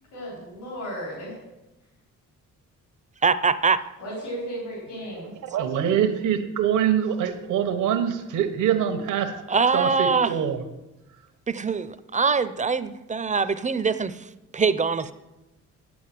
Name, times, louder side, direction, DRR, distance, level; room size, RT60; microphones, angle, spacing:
voice 1, 0.1-1.4 4.0-5.3, equal, 80° left, -5 dB, 4.9 m, -34 dB
voice 2, 3.2-3.8 9.5-10.4 11.5-14.3 14.5-15.1, right 5 dB, 25° right, 14 dB, 0.6 m, -23 dB
voice 3, 5.5-9.3 9.7-10.6, right 9 dB, 80° right, 7 dB, 1.3 m, -24 dB
8.9 x 8.6 x 7.6 m, 1.0 s
cardioid pair, 90°, 30 cm